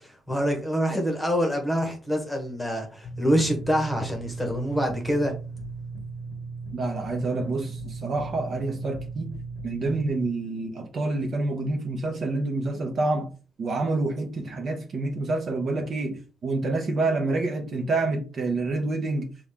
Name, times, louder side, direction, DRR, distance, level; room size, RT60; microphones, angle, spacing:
voice 1, 0.0-5.3, equal, 5° left, 1.2 m, -26 dB
sound 1, 3.0-10.1, right 4 dB, 45° left, 0.9 m, -37 dB
voice 2, 6.7-9.3 9.6-13.3 13.6-16.2 16.4-19.3, right 2 dB, 40° right, 0.9 m, -27 dB
6.2 x 2.4 x 3.6 m
cardioid pair, 140°, 0 cm